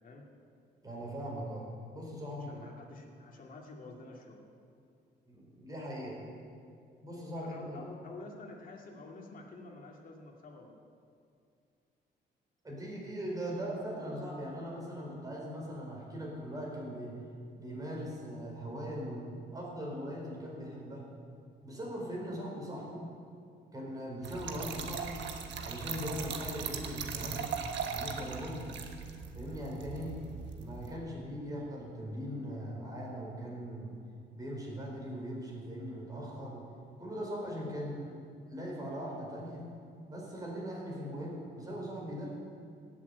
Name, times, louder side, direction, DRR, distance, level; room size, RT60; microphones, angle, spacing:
voice 1, 0.8-2.5 5.3-6.2 7.0-7.8 12.6-17.1 17.5-21.1 21.6-23.1 23.7-25.3 25.6-27.5 27.9-28.6 29.3-30.2 30.5-33.9 34.3-36.6 37.0-38.1 38.5-39.6 40.1-42.3, equal, 20° right, -3 dB, 4.5 m, -40 dB
voice 2, 2.4-4.4 7.4-10.8, left 3 dB, 45° left, 0 dB, 2.3 m, -49 dB
Trickle dribble / Fill (with liquid), 24.2-31.0, right 6 dB, 70° right, 1.4 m, -39 dB
18.0 x 7.6 x 8.3 m, 2.4 s
cardioid pair, 145°, 19 cm